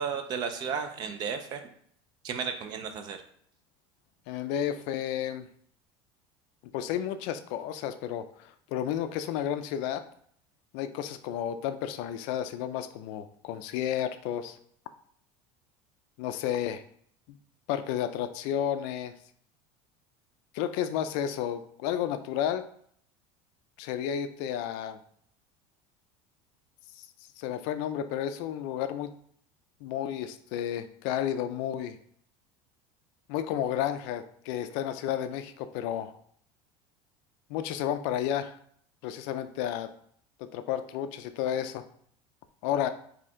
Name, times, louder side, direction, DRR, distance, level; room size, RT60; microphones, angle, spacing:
voice 1, 0.0-1.6 2.2-3.2, right 6 dB, 35° right, 7 dB, 0.4 m, -33 dB
voice 2, 4.3-5.5 6.7-10.0 10.7-14.6 16.2-16.8 17.3-17.4 17.7-19.1 20.5-22.6 23.8-25.0 27.0-27.1 27.4-29.1 29.8-32.0 33.3-36.1 37.5-38.6 39.0-39.9 40.4-41.8 42.6-42.9, left 10 dB, 60° left, 10 dB, 0.4 m, -32 dB
4.3 x 2.8 x 3.6 m, 0.64 s
cardioid pair, 170°, 14 cm